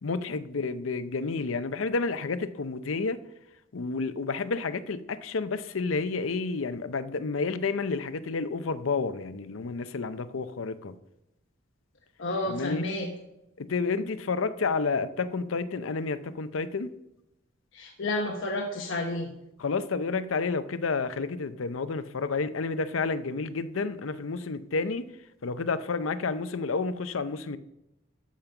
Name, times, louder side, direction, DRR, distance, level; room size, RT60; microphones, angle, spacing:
voice 1, 0.0-3.2 3.7-10.9 12.5-12.8 13.6-16.9 19.6-25.0 25.4-27.6, left 4 dB, 85° left, 13 dB, 0.6 m, -30 dB
voice 2, 12.2-13.1 17.7-19.3, left 2 dB, 70° left, 1 dB, 1.1 m, -30 dB
13.0 x 5.2 x 5.8 m, 0.89 s
head